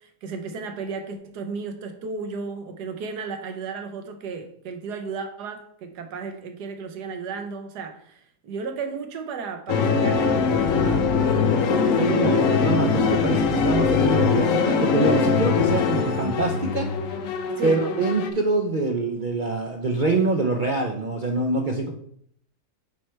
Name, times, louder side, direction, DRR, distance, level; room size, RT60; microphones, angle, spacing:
voice 1, 0.0-11.1 17.6-17.8, right 4 dB, 85° right, 7 dB, 1.4 m, -34 dB
sound 1, 9.7-18.3, left 5 dB, 60° left, 1.0 m, -22 dB
voice 2, 11.7-16.9 17.6-21.9, right 3 dB, 65° right, 2 dB, 0.4 m, -25 dB
8.6 x 3.2 x 4.4 m, 0.64 s
omnidirectional pair, 1.7 m